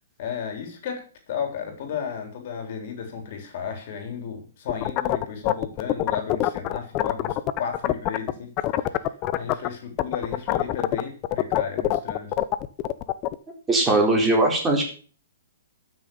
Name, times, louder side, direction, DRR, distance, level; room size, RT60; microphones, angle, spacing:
voice 1, 0.2-8.5 8.8-9.0 9.3-12.3, left 7 dB, 50° left, 5 dB, 3.6 m, -34 dB
sound 1, 4.7-8.3 8.6-9.7 10.0-13.3, left 15 dB, 30° left, 0.8 m, -24 dB
voice 2, 13.7-14.8, right 2 dB, 15° right, 0 dB, 4.3 m, -20 dB
12.5 x 6.6 x 7.0 m, 0.41 s
hypercardioid pair, 140°, 0 cm